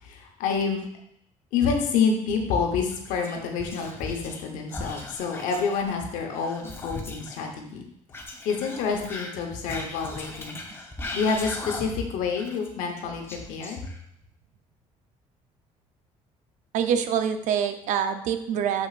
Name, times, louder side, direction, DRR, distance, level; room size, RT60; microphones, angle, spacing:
voice 1, 0.0-0.8 1.5-7.9 8.4-10.6 11.1-13.8, left 5 dB, 90° left, 2 dB, 0.9 m, -28 dB
Whispering, 2.8-4.4 4.7-7.4 8.1-12.1 12.4-14.2, left 2 dB, 20° left, 1.0 m, -38 dB
voice 2, 16.7-18.9, right 8 dB, 70° right, 9 dB, 0.6 m, -25 dB
6.4 x 6.0 x 2.4 m, 0.73 s
cardioid pair, 125°, 13 cm